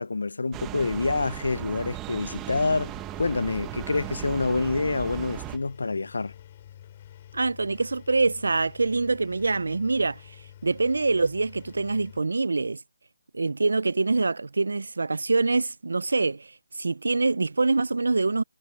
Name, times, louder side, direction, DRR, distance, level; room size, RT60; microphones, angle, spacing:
voice 1, 0.0-6.3, left 3 dB, 75° left, 0.6 m, -27 dB
sound 1, 0.5-5.6, right 16 dB, 10° right, 1.1 m, -37 dB
Engine, 2.2-12.2, left 11 dB, 20° left, 5.7 m, -49 dB
voice 2, 7.3-10.2 10.6-12.8 13.3-18.4, right 3 dB, 80° right, 0.4 m, -25 dB
hypercardioid pair, 180°, 0 cm